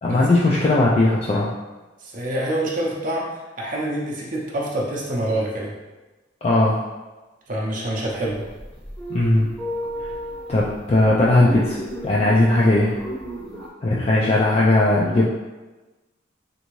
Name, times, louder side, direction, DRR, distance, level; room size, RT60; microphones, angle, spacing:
voice 1, 0.0-1.5 6.4-6.8 9.1-9.5 10.0-10.1 10.5-11.8 12.0-12.9 13.8-15.3, left 2 dB, 30° left, -6 dB, 0.3 m, -18 dB
voice 2, 2.0-5.7 7.5-8.5 13.4-13.5, right 1 dB, 40° right, -4 dB, 0.6 m, -26 dB
sound 1, 8.1-13.7, equal, 5° left, 0.7 m, -34 dB
3.4 x 2.6 x 3.0 m, 1.2 s
head